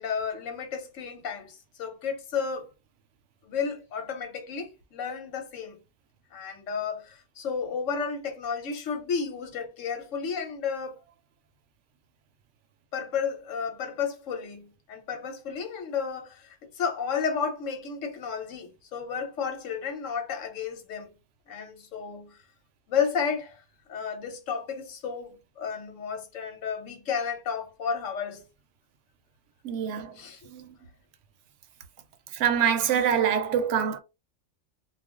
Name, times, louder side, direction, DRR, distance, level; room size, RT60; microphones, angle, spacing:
voice 1, 0.0-2.7 3.4-5.8 6.3-11.0 12.9-21.1 21.5-22.4 22.9-23.6 23.9-28.4 30.2-30.5, left 6 dB, 85° left, 1.2 m, -32 dB
voice 2, 29.6-30.2 30.5-30.7 32.3-34.0, right 8 dB, 75° right, 0.9 m, -25 dB
2.4 x 2.2 x 3.6 m
omnidirectional pair, 1.3 m